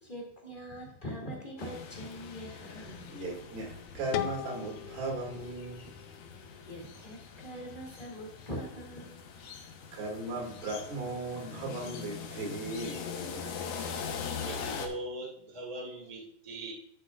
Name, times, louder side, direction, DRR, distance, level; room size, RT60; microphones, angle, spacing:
voice 1, 0.0-3.1 6.1-9.3 9.6-9.8, equal, 20° left, -2 dB, 1.3 m, -43 dB
sound 1, 1.6-14.9, left 6 dB, 70° left, 1.8 m, -42 dB
voice 2, 3.1-5.8 9.9-13.7, right 2 dB, 80° right, -1 dB, 4.2 m, -37 dB
sound 2, 4.1-7.0, left 11 dB, 85° left, 2.7 m, -39 dB
voice 3, 14.4-16.7, right 2 dB, 15° right, -1 dB, 1.2 m, -40 dB
11.5 x 8.1 x 2.4 m, 0.71 s
omnidirectional pair, 4.6 m